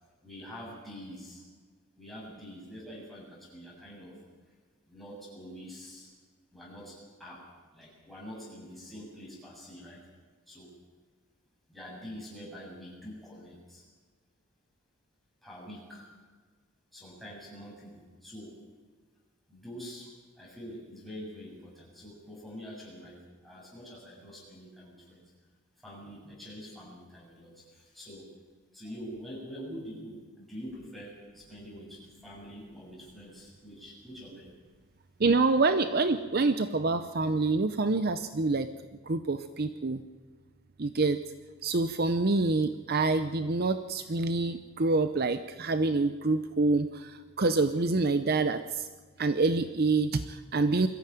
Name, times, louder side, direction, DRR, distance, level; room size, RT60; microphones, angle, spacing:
voice 1, 0.2-1.4 2.0-4.2 4.9-6.1 6.5-7.4 7.7-10.0 10.5-10.7 11.7-13.8 15.4-16.1 16.9-18.6 19.5-20.1 20.4-25.2 25.8-28.3 28.7-34.5, equal, ahead, -4 dB, 7.2 m, -45 dB
voice 2, 35.2-38.7 39.0-40.0 40.8-41.2 41.6-48.9 49.2-50.9, right 3 dB, 45° right, 11 dB, 0.7 m, -26 dB
22.5 x 14.5 x 9.1 m, 1.5 s
head